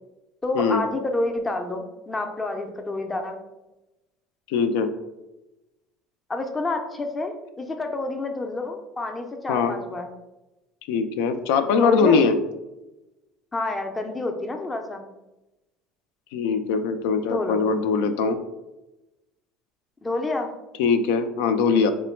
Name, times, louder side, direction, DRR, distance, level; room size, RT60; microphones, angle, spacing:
voice 1, 0.4-3.4 6.3-10.1 11.8-12.2 13.5-15.0 17.3-17.6 20.0-20.5, left 2 dB, 15° left, 5 dB, 0.5 m, -28 dB
voice 2, 4.5-4.9 9.5-9.7 10.9-12.4 16.3-18.4 20.8-21.9, left 5 dB, 85° left, 8 dB, 0.4 m, -21 dB
3.7 x 2.1 x 4.3 m, 1.0 s
cardioid pair, 140°, 0 cm